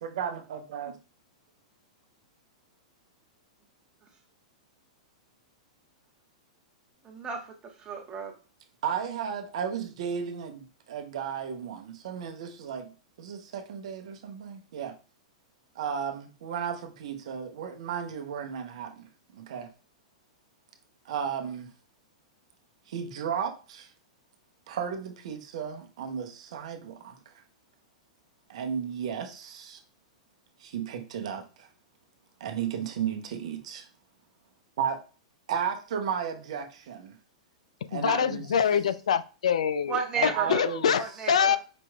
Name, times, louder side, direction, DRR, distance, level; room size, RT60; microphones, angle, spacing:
voice 1, 0.0-1.0 8.8-14.9 15.8-19.7 21.0-21.7 22.9-23.9 24.7-27.2 28.5-29.8 30.6-31.7 32.4-33.8 34.8-35.0 35.5-37.2 37.9-38.6 40.2-41.0, right 8 dB, 65° right, 0.7 m, -34 dB
voice 2, 7.0-8.3 39.9-40.7 41.0-41.6, right 6 dB, 25° right, 1.1 m, -33 dB
voice 3, 37.9-40.0 40.2-41.6, left 8 dB, 80° left, 0.3 m, -25 dB
5.1 x 3.0 x 2.2 m
hypercardioid pair, 115°, 3 cm